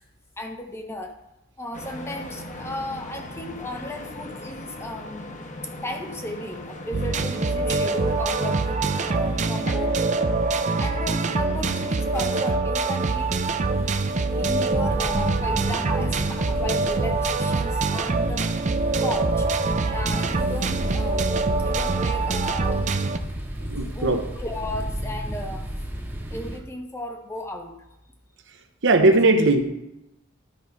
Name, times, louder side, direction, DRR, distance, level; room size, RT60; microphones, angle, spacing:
voice 1, 0.4-1.1 1.6-5.5 5.8-10.0 10.8-13.3 14.4-18.5 19.0-19.5 19.8-23.3 23.8-25.7 26.3-27.8, left 1 dB, 15° left, 4 dB, 0.8 m, -35 dB
sound 1, 1.7-12.6, left 1 dB, 40° left, 1.1 m, -39 dB
sound 2, 6.9-23.2, right 3 dB, 35° right, 0.5 m, -24 dB
sound 3, 13.0-26.6, equal, 10° right, 1.0 m, -33 dB
voice 2, 23.7-24.2 28.8-29.6, right 2 dB, 65° right, 7 dB, 0.9 m, -18 dB
12.5 x 4.7 x 5.3 m, 0.88 s
head